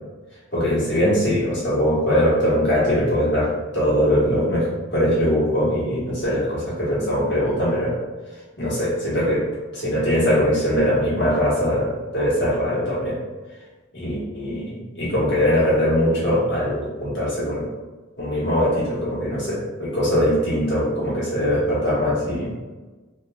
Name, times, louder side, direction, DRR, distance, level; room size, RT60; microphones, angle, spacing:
voice 1, 0.5-7.9 8.6-9.5 9.7-13.2 13.9-17.7 18.2-22.5, equal, 55° left, -9 dB, 1.4 m, -21 dB
3.0 x 2.7 x 2.3 m, 1.3 s
head